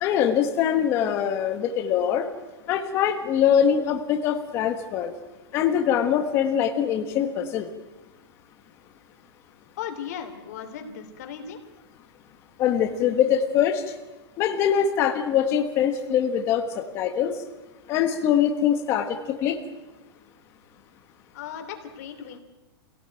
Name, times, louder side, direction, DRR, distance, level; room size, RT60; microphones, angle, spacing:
voice 1, 0.0-2.3 2.7-5.1 5.5-7.7 12.6-13.8 14.4-17.3 17.9-19.6, left 9 dB, 20° left, 5 dB, 1.4 m, -23 dB
voice 2, 9.8-11.6 21.3-22.4, left 8 dB, 35° left, 6 dB, 3.2 m, -36 dB
27.0 x 17.5 x 9.1 m, 1.1 s
supercardioid pair, 180°, 14 cm